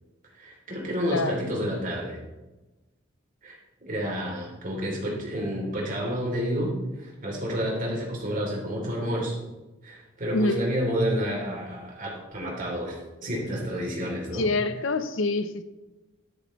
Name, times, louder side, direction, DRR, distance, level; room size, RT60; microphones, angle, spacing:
voice 1, 0.3-2.2 3.4-9.4 9.8-14.5, equal, 40° right, -2 dB, 3.2 m, -30 dB
voice 2, 1.1-1.4 10.3-10.7 14.3-15.6, left 2 dB, 75° left, 11 dB, 0.7 m, -26 dB
11.0 x 10.0 x 3.1 m, 1.1 s
head